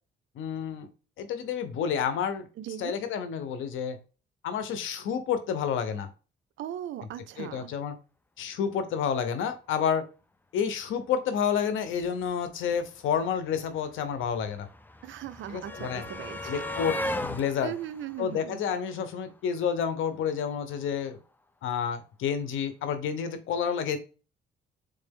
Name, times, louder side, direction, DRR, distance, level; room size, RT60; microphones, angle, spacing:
voice 1, 0.4-0.9 1.2-2.5 2.8-4.0 4.4-6.1 7.4-7.9 8.4-10.1 10.5-14.7 15.5-16.0 16.4-17.7 18.2-21.2 21.6-24.0, left 7 dB, 80° left, 0.8 m, -29 dB
voice 2, 2.6-2.9 6.6-7.7 15.0-16.8 17.6-18.6, right 11 dB, 75° right, 0.5 m, -38 dB
sound 1, 12.9-13.0 13.1-19.3 20.5-20.6 20.9-21.0, left 1 dB, 10° left, 0.5 m, -37 dB
3.9 x 3.2 x 3.6 m
cardioid pair, 90°, 20 cm